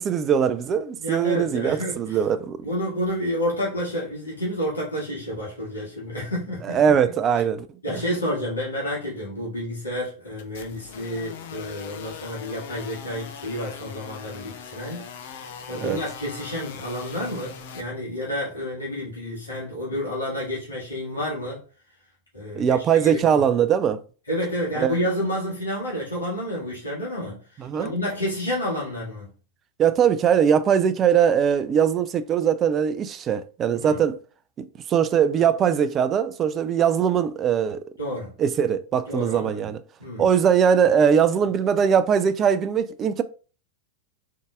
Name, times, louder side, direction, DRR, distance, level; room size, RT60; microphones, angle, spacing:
voice 1, 0.0-2.6 6.6-8.0 15.8-16.0 22.5-24.0 24.8-25.0 27.6-27.9 29.8-34.2 34.6-37.8 38.4-39.8 40.2-43.2, right 8 dB, 30° right, 0.4 m, -21 dB
voice 2, 1.0-2.2 2.6-6.8 7.8-15.0 15.7-21.6 22.3-23.4 24.3-29.3 33.7-34.0 38.0-38.3 39.1-39.5 40.0-40.3, equal, 75° left, 1.8 m, -30 dB
sound 1, 10.4-17.8, left 6 dB, 55° left, 0.5 m, -40 dB
3.9 x 3.6 x 2.3 m
figure-of-eight pair, 90°, 0 cm